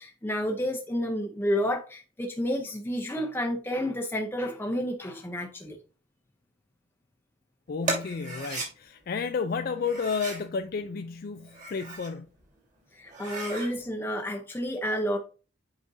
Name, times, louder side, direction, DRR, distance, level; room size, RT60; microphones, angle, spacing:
voice 1, 0.0-5.8 12.9-15.2, equal, 10° left, 0.6 m, -30 dB
voice 2, 7.7-12.3, left 5 dB, 50° left, 0.3 m, -32 dB
sound 1, 7.8-8.7 9.8-10.5 11.4-12.1 12.6-12.7 13.0-13.7, right 2 dB, 40° right, 2.4 m, -35 dB
7.9 x 5.0 x 2.6 m
head